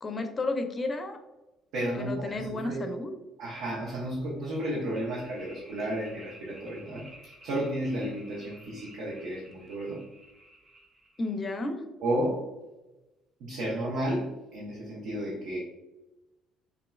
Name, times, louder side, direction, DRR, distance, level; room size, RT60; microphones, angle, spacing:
voice 1, 0.0-1.2 2.0-3.1 11.2-11.8, left 2 dB, 30° left, 6 dB, 0.5 m, -32 dB
voice 2, 1.7-2.9 3.4-10.0 12.0-12.4 13.4-15.6, right 1 dB, 60° right, -4 dB, 0.7 m, -32 dB
sound 1, 4.9-11.4, right 1 dB, 20° right, 0.9 m, -53 dB
3.5 x 2.9 x 2.2 m, 1.0 s
figure-of-eight pair, 50°, 0 cm